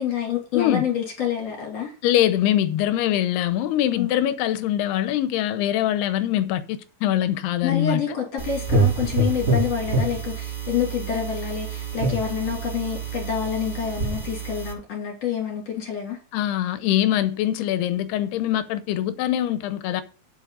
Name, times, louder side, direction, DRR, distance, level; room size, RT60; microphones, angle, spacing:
voice 1, 0.0-1.9 3.9-4.2 7.6-16.2, left 8 dB, 45° left, 3.6 m, -27 dB
voice 2, 2.0-8.0 16.3-20.0, left 12 dB, 85° left, 2.9 m, -23 dB
sound 1, 8.4-14.7, right 3 dB, 20° right, 2.4 m, -26 dB
8.8 x 7.9 x 3.9 m
omnidirectional pair, 4.6 m